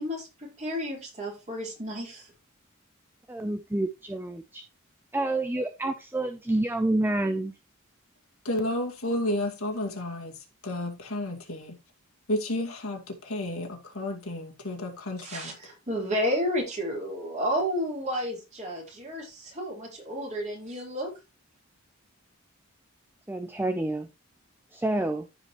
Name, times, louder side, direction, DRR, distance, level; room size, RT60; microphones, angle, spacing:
voice 1, 0.0-2.3 15.2-21.1, equal, 35° right, 4.4 m, -31 dB
voice 2, 3.3-4.6 5.1-7.5 23.3-24.1 24.7-25.3, right 2 dB, 10° right, 0.5 m, -28 dB
voice 3, 8.4-11.7 12.3-15.5, left 1 dB, 85° left, 2.3 m, -32 dB
14.0 x 5.1 x 3.1 m
head